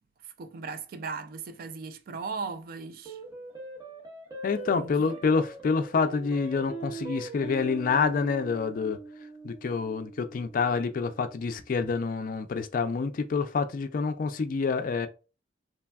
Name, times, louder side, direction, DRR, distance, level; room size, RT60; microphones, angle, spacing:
voice 1, 0.2-3.2 4.7-5.2, right 4 dB, 55° right, 0.3 m, -38 dB
sound 1, 3.0-11.7, right 3 dB, 20° right, 0.8 m, -42 dB
voice 2, 4.4-9.0 9.4-15.1, left 5 dB, 50° left, 0.3 m, -27 dB
3.3 x 2.2 x 2.2 m
head